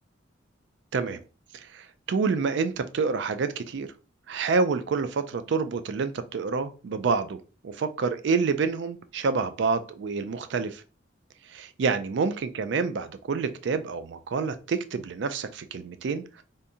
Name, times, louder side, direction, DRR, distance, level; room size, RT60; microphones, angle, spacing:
voice 1, 1.7-3.9 4.3-7.4 7.6-10.8 11.5-16.4, right 4 dB, 60° right, 0.4 m, -28 dB
3.5 x 2.6 x 2.7 m
head